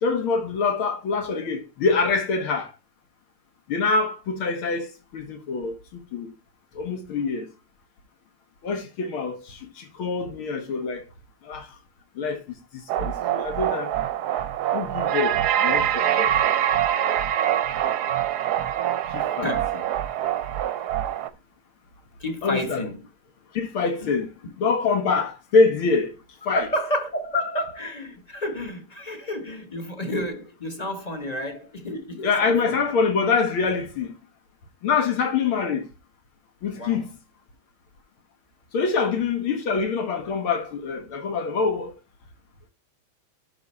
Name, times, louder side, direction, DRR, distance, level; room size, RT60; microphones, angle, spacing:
voice 1, 0.0-2.7 3.7-6.3 6.8-7.5 8.6-11.0 11.4-11.7 12.2-13.9 14.7-16.4 19.1-19.5 22.4-22.8 23.5-24.3 24.6-26.1 26.5-26.7 32.2-34.2 34.8-35.9 36.6-37.1 38.7-41.9, left 4 dB, 85° left, 2.3 m, -25 dB
sound 1, 12.9-21.3, right 11 dB, 65° right, 1.0 m, -24 dB
voice 2, 22.2-23.0 24.0-24.1 24.4-24.5 26.5-32.9 36.7-37.0 38.9-39.1, left 1 dB, 30° left, 0.8 m, -30 dB
12.0 x 3.9 x 4.2 m
omnidirectional pair, 2.3 m